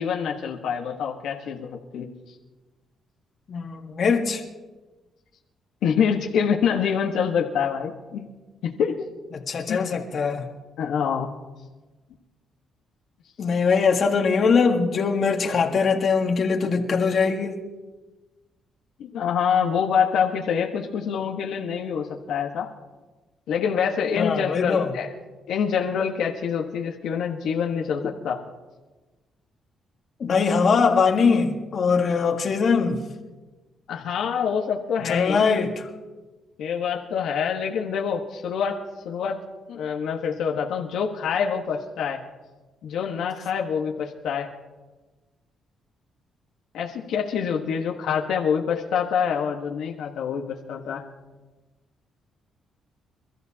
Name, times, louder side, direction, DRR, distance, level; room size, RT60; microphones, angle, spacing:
voice 1, 0.0-2.1 5.8-8.2 8.6-9.1 9.7-10.0 10.8-11.3 19.0-22.7 23.5-25.1 25.5-28.4 33.9-35.4 36.6-38.8 39.0-39.4 39.7-42.2 42.8-44.5 46.7-51.0, left 7 dB, 80° left, 1 dB, 1.4 m, -26 dB
voice 2, 3.5-4.4 9.3-10.5 13.4-17.6 24.2-24.9 28.0-28.1 30.2-33.0 35.0-35.9, left 5 dB, 50° left, 2 dB, 1.6 m, -22 dB
27.0 x 13.5 x 2.9 m, 1.2 s
cardioid pair, 90°, 0 cm